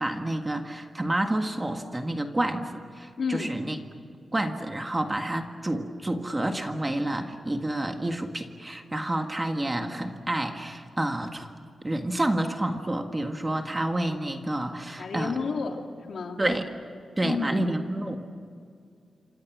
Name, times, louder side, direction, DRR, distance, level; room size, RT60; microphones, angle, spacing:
voice 1, 0.0-3.8 4.3-11.5 11.8-15.4 16.4-16.7 17.2-18.2, right 1 dB, 15° right, 5 dB, 1.7 m, -29 dB
voice 2, 3.2-3.5 15.0-16.4 17.2-17.6, left 4 dB, 60° left, 3 dB, 2.9 m, -31 dB
27.5 x 26.5 x 6.2 m, 2.4 s
wide cardioid pair, 165°, 0 cm